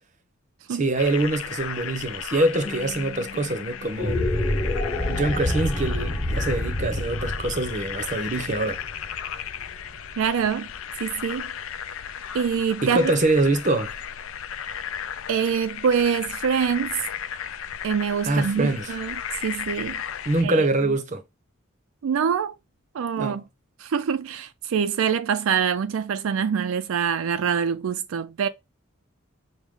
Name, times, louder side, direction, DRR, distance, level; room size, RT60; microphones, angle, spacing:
voice 1, 0.7-4.3 5.1-8.8 12.8-13.9 18.3-18.9 20.3-21.2 23.2-23.4, right 2 dB, 35° right, 0.7 m, -24 dB
sound 1, 0.9-20.4, left 8 dB, 75° left, 0.4 m, -35 dB
Guitar, 2.6-5.7, left 4 dB, 30° left, 1.1 m, -45 dB
sound 2, 3.9-10.3, left 1 dB, 5° left, 1.1 m, -28 dB
voice 2, 10.2-10.7 11.0-11.5 12.3-13.1 15.3-17.0 17.8-19.2 19.4-20.0 20.4-20.9 22.0-22.5 22.9-23.4 23.8-28.5, right 7 dB, 80° right, 0.4 m, -25 dB
6.2 x 2.1 x 3.6 m
head